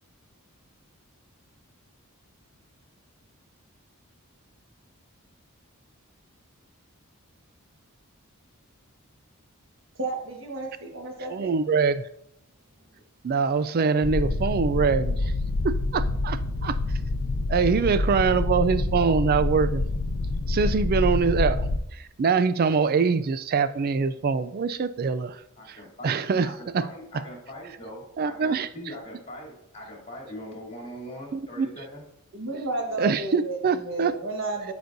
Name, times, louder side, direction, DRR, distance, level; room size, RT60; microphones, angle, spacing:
voice 1, 10.0-11.5 32.3-33.6 33.8-34.7, right 2 dB, 60° right, 2 dB, 1.3 m, -32 dB
voice 2, 11.3-12.0 13.2-15.3 15.6-16.8 17.5-19.8 20.5-21.7 21.9-25.4 25.7-25.8 26.0-26.5 26.7-26.8 28.2-28.7 31.3-31.7 33.0-34.1, right 5 dB, 45° right, 14 dB, 0.3 m, -24 dB
sound 1, 14.0-21.8, left 2 dB, 80° left, 0.6 m, -27 dB
voice 3, 25.6-32.0, equal, 30° left, -2 dB, 2.7 m, -41 dB
12.5 x 5.1 x 2.6 m, 0.76 s
head